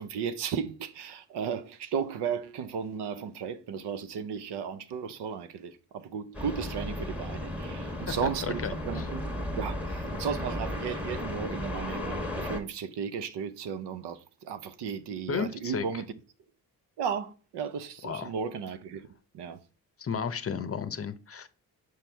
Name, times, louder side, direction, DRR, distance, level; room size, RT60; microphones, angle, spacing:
voice 1, 0.0-9.3 9.6-16.1 17.0-19.1 19.3-19.6, right 7 dB, 85° right, 0.7 m, -35 dB
sound 1, 6.3-12.6, left 1 dB, 5° right, 1.2 m, -34 dB
voice 2, 8.1-9.1 15.3-15.8 18.0-18.3 20.0-21.5, left 6 dB, 35° left, 0.6 m, -34 dB
6.0 x 4.8 x 3.3 m
cardioid pair, 80°, 40 cm